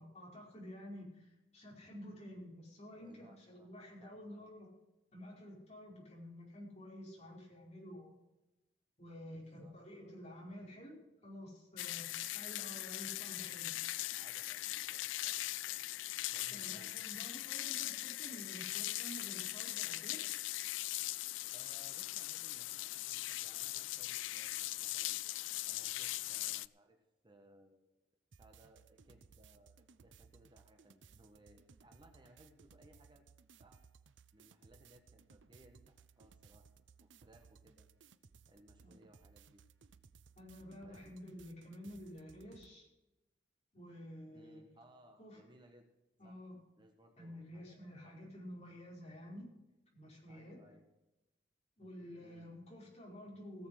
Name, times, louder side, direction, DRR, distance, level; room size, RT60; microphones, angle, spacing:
voice 1, 0.0-4.7 5.1-8.1 9.0-13.7 16.5-20.2 38.8-39.0 40.3-42.9 43.7-44.6 45.2-45.4 46.2-46.6 47.2-49.5 49.9-50.6 51.8-53.7, equal, 35° left, -3 dB, 5.0 m, -51 dB
voice 2, 3.0-3.7 4.0-4.5 9.3-9.7 14.1-15.8 16.3-16.9 21.5-25.2 25.6-28.0 28.4-33.2 33.6-33.8 34.3-36.7 37.0-37.9 38.5-39.6 40.8-41.1 44.3-45.9 46.2-46.4 46.8-48.2 50.2-50.8 52.2-52.5, right 1 dB, 25° right, 4 dB, 1.4 m, -64 dB
sound 1, 11.8-26.7, left 17 dB, 90° left, 0.4 m, -40 dB
sound 2, 28.3-42.8, right 5 dB, 80° right, 0.6 m, -63 dB
17.0 x 7.1 x 6.4 m, 0.97 s
head